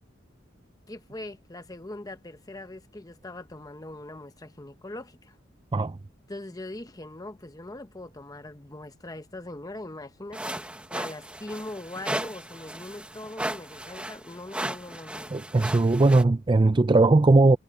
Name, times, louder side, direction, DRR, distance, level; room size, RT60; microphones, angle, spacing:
voice 1, 0.9-5.4 6.3-15.3, left 1 dB, 20° left, 1.0 m, -41 dB
sound 1, 10.3-16.2, right 1 dB, 5° right, 1.5 m, -36 dB
voice 2, 15.3-17.6, right 2 dB, 25° right, 0.4 m, -19 dB
head